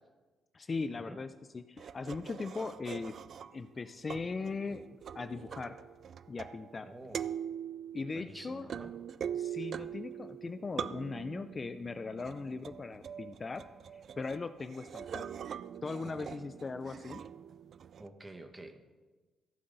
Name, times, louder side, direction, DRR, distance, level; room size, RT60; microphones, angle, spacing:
voice 1, 0.5-1.3 1.5-3.2 3.5-4.8 5.1-5.8 6.3-6.9 7.9-8.7 9.3-13.6 13.9-15.3 15.8-17.2, left 4 dB, 30° left, 11 dB, 0.4 m, -39 dB
sound 1, 1.8-3.7 4.1-6.8 7.1-18.1, right 8 dB, 55° right, 0.4 m, -43 dB
voice 2, 6.8-7.3 8.1-8.9 16.0-16.4 18.0-18.8, right 2 dB, 20° right, 7 dB, 1.3 m, -49 dB
15.0 x 7.6 x 4.0 m, 1.3 s
cardioid pair, 90°, 0 cm